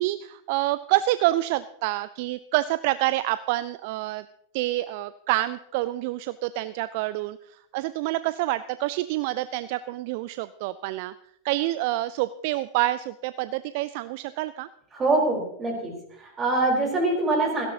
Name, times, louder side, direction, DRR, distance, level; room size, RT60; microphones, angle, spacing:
voice 1, 0.0-4.2 4.5-11.1 11.4-14.7, right 16 dB, 50° right, 16 dB, 0.4 m, -27 dB
voice 2, 14.9-17.7, right 2 dB, 20° right, 1 dB, 4.2 m, -24 dB
17.5 x 16.0 x 2.8 m, 0.74 s
figure-of-eight pair, 90°, 0 cm